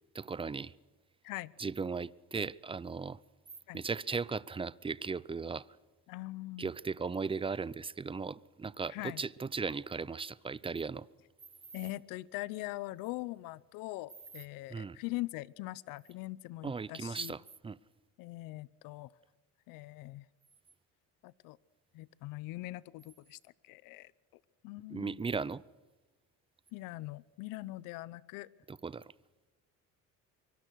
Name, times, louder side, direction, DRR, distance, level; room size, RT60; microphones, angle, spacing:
voice 1, 0.1-0.7 1.6-3.2 3.7-5.7 6.6-11.1 14.7-15.0 16.6-17.8 24.9-25.6 28.7-29.1, right 4 dB, 15° right, 0.7 m, -37 dB
voice 2, 6.1-6.7 8.9-9.2 11.7-17.3 18.2-19.1 19.7-20.3 21.2-21.6 21.9-24.1 24.6-25.2 26.7-28.5, left 19 dB, 90° left, 0.8 m, -42 dB
25.0 x 24.0 x 6.4 m
cardioid pair, 120°, 32 cm